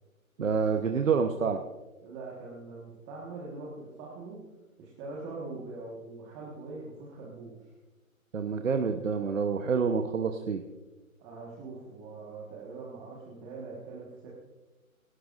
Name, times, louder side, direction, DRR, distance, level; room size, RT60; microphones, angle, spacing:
voice 1, 0.4-1.6 8.3-10.6, right 5 dB, 65° right, 5 dB, 1.1 m, -27 dB
voice 2, 2.0-4.4 4.8-7.6 11.2-14.3, right 3 dB, 15° right, -4 dB, 1.5 m, -42 dB
26.5 x 13.0 x 2.6 m, 1.2 s
figure-of-eight pair, 155°, 42 cm